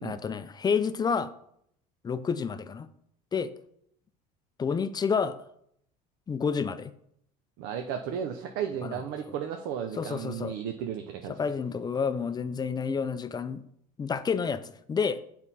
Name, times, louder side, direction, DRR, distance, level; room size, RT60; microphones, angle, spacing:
voice 1, 0.0-1.3 2.0-2.9 3.3-3.5 4.6-5.4 6.3-6.9 8.8-9.0 10.0-10.6 11.3-13.6 14.0-15.2, left 6 dB, 20° left, 12 dB, 0.4 m, -29 dB
voice 2, 7.6-11.4, right 8 dB, 75° right, 5 dB, 0.7 m, -34 dB
7.1 x 4.3 x 4.1 m, 0.71 s
supercardioid pair, 105°, 19 cm